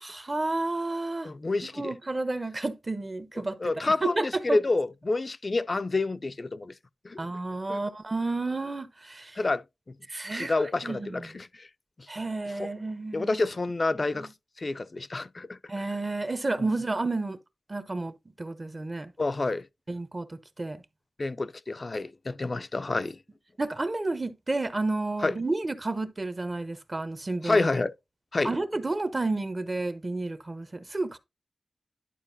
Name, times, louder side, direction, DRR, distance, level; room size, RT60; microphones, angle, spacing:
voice 1, 0.0-1.3 1.7-3.6 3.8-4.6 7.2-9.4 10.1-10.5 10.8-11.2 12.1-13.5 14.1-14.3 15.7-17.4 17.7-18.1 18.4-19.1 19.9-20.3 20.6-20.8 23.6-27.6 28.4-31.2, right 2 dB, 30° right, 0.8 m, -31 dB
voice 2, 1.2-1.9 3.6-6.7 7.0-7.2 7.7-7.8 9.4-9.6 10.3-11.7 12.6-12.7 13.1-14.3 14.6-15.6 16.6-16.7 19.2-19.6 21.2-23.2 25.2-25.3 27.4-27.9 28.3-28.6, left 3 dB, 40° left, 0.5 m, -28 dB
11.0 x 4.6 x 2.7 m
wide cardioid pair, 90°, 0 cm